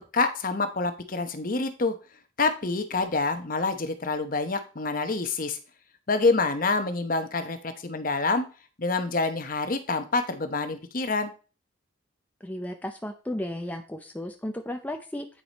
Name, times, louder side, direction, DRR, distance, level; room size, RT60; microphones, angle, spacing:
voice 1, 0.0-1.9 2.4-5.6 6.1-8.5 8.8-11.3, left 3 dB, 45° left, 9 dB, 0.8 m, -27 dB
voice 2, 12.4-15.3, left 1 dB, 10° left, 5 dB, 0.5 m, -34 dB
8.9 x 4.8 x 4.1 m, 0.35 s
head